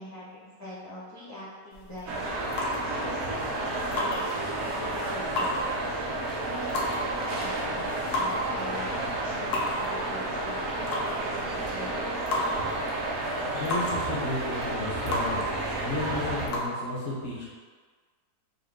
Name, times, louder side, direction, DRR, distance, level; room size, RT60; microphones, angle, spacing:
voice 1, 0.0-6.1 6.4-12.3, left 1 dB, 25° left, -9 dB, 0.5 m, -43 dB
sound 1, 1.7-16.6, left 1 dB, 90° left, 1.2 m, -35 dB
sound 2, 2.1-16.5, right 2 dB, 65° right, 0.7 m, -31 dB
voice 2, 13.5-15.4 15.8-17.5, left 2 dB, 50° left, -6 dB, 1.0 m, -33 dB
3.8 x 2.1 x 3.6 m, 1.5 s
omnidirectional pair, 1.6 m